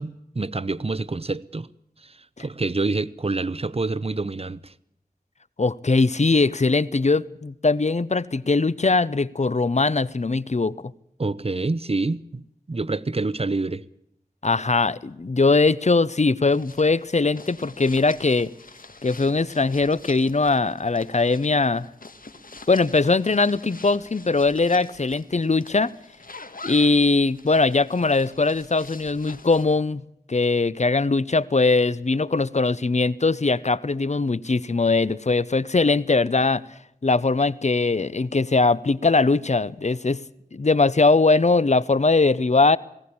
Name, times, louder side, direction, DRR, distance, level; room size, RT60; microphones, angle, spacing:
voice 1, 0.0-1.7 2.0-4.7 11.2-13.8, right 3 dB, 40° right, 0.7 m, -27 dB
voice 2, 5.6-10.8 14.4-18.5 19.0-21.9 22.7-25.9 26.6-30.0 30.3-36.6 37.0-40.2 40.5-42.8, left 3 dB, 50° left, 0.7 m, -21 dB
sound 1, 16.5-29.8, left 3 dB, 70° left, 1.5 m, -46 dB
19.5 x 16.5 x 8.6 m
wide cardioid pair, 45°, 15 cm